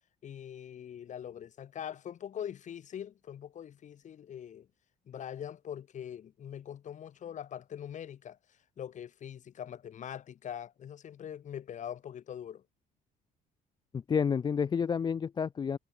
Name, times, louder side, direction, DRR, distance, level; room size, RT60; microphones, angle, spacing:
voice 1, 0.2-4.7 5.1-8.4 8.8-12.6, left 9 dB, 45° left, 1.2 m, -42 dB
voice 2, 13.9-15.8, left 6 dB, 25° left, 0.4 m, -30 dB
cardioid pair, 110°, 17 cm